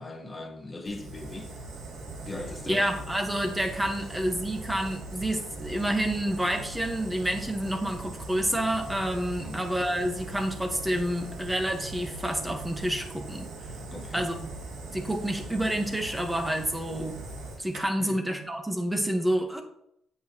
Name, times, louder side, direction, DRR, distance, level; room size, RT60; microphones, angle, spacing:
voice 1, 0.0-1.5 2.2-2.8 9.4-9.7 13.9-14.3 18.0-18.2, left 2 dB, 20° left, 1.2 m, -39 dB
Fire, 0.8-17.8, right 2 dB, 75° right, 1.6 m, -40 dB
voice 2, 2.7-13.5 14.1-14.5 14.9-17.2 17.6-19.6, right 1 dB, 10° right, 1.3 m, -29 dB
8.1 x 6.3 x 3.0 m
cardioid pair, 90°, 0 cm